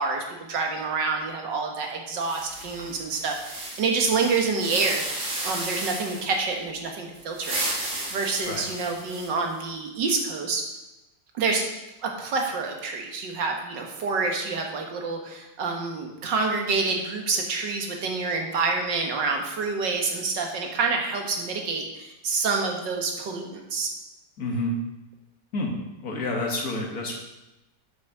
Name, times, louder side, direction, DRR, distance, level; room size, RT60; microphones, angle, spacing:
voice 1, 0.0-10.7 11.3-11.7 12.0-23.9, right 4 dB, 90° right, 2 dB, 2.1 m, -27 dB
sound 1, 2.2-6.4 7.2-9.5, right 1 dB, 45° right, 2.3 m, -34 dB
voice 2, 24.4-24.8 25.5-25.7 26.0-27.2, left 2 dB, 55° left, 0 dB, 2.0 m, -28 dB
8.1 x 6.4 x 6.1 m, 0.97 s
omnidirectional pair, 1.9 m